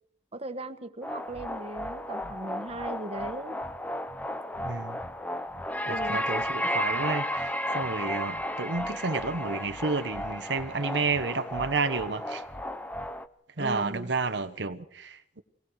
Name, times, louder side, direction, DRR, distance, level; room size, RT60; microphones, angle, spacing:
voice 1, 0.3-3.6 5.8-6.2 13.6-14.1, right 1 dB, 35° right, 1.4 m, -38 dB
sound 1, 1.0-13.3, equal, 10° left, 0.9 m, -33 dB
voice 2, 4.6-5.0 5.9-12.4 13.6-15.4, right 4 dB, 75° right, 1.1 m, -31 dB
24.0 x 19.0 x 6.4 m
head